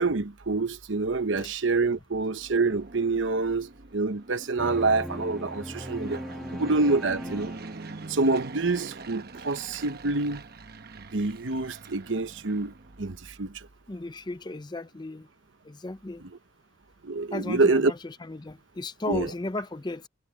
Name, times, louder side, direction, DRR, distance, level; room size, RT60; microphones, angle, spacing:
voice 1, 0.0-6.2 6.5-7.5 8.1-10.4 11.1-13.6 17.0-17.9 19.1-19.3, right 3 dB, 70° right, 1.0 m, -26 dB
Fixed-wing aircraft airplane, 2.3-13.3, right 3 dB, 50° right, 1.0 m, -44 dB
sound 1, 4.6-8.3, equal, ahead, 1.4 m, -39 dB
voice 2, 13.9-15.3 15.6-16.2 17.3-20.1, left 2 dB, 20° left, 0.5 m, -35 dB
head